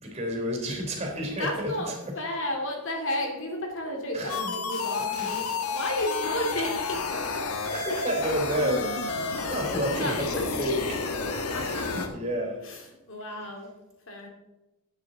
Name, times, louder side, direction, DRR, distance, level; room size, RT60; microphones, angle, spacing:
voice 1, 0.0-2.1 4.1-4.5 5.0-5.3 7.7-9.1 9.4-10.8 11.6-12.6 13.3-13.5, equal, 30° right, 1 dB, 3.5 m, -31 dB
voice 2, 1.4-7.4 9.4-10.7 11.3-12.1 12.6-13.7 14.1-14.3, left 1 dB, 60° left, 2 dB, 2.5 m, -33 dB
sound 1, 4.3-12.1, left 4 dB, 85° left, 1.3 m, -31 dB
12.5 x 9.7 x 4.0 m, 1.0 s
head